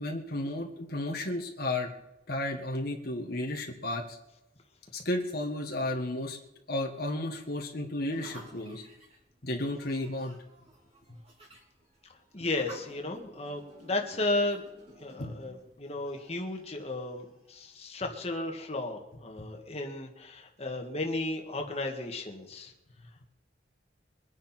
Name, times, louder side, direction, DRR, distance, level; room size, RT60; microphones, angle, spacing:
voice 1, 0.0-1.9 2.3-4.2 4.9-6.4 6.7-8.8 9.4-10.3 15.2-15.3 19.4-19.5, left 1 dB, 55° left, 2 dB, 1.8 m, -33 dB
sound 1, 8.1-17.7, right 1 dB, 35° right, 4.1 m, -54 dB
voice 2, 12.3-14.6 14.9-22.7, left 2 dB, 35° left, 2 dB, 2.0 m, -34 dB
23.5 x 10.0 x 4.5 m, 0.89 s
head